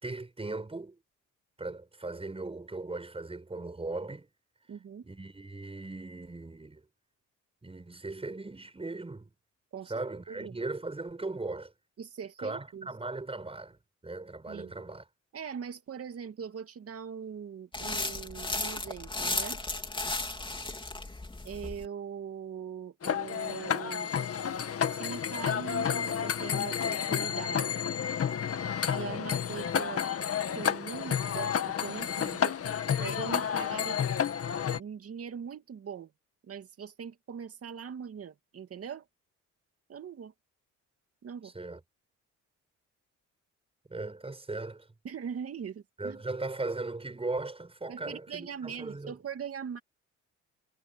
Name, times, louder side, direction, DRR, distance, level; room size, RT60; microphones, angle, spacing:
voice 1, 0.0-1.0 1.6-4.3 5.0-6.8 7.6-9.3 9.9-11.7 12.4-15.0 41.4-41.8 43.9-44.9 46.0-49.2, right 2 dB, 20° right, 6.1 m, -38 dB
voice 2, 4.7-5.0 9.7-10.6 12.0-12.9 14.5-14.8 15.3-19.6 21.4-24.1 24.9-27.8 28.9-30.1 30.5-32.6 33.0-34.1 34.7-36.1 36.4-39.1 39.9-40.3 41.2-41.5 45.0-46.2 47.9-49.8, right 7 dB, 50° right, 2.5 m, -41 dB
sound 1, 17.7-21.9, left 2 dB, 15° left, 3.5 m, -35 dB
sound 2, 23.0-34.8, left 8 dB, 50° left, 1.9 m, -31 dB
cardioid pair, 90°, 30 cm